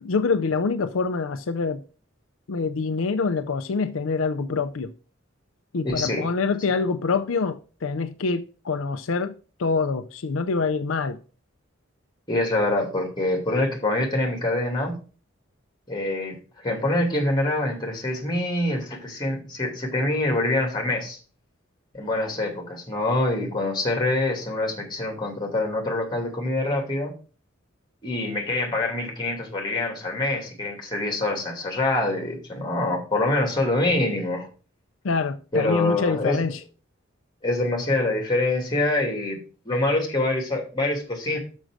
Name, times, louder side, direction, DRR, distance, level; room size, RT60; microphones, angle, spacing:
voice 1, 0.0-1.8 2.5-4.9 5.7-9.3 9.6-11.2 35.0-36.6, left 4 dB, 80° left, 0.5 m, -25 dB
voice 2, 5.8-6.3 12.3-15.0 15.9-21.2 21.9-27.1 28.0-34.5 35.5-36.4 37.4-39.4 39.6-41.4, left 2 dB, 20° left, 2.7 m, -25 dB
6.4 x 6.2 x 6.3 m
head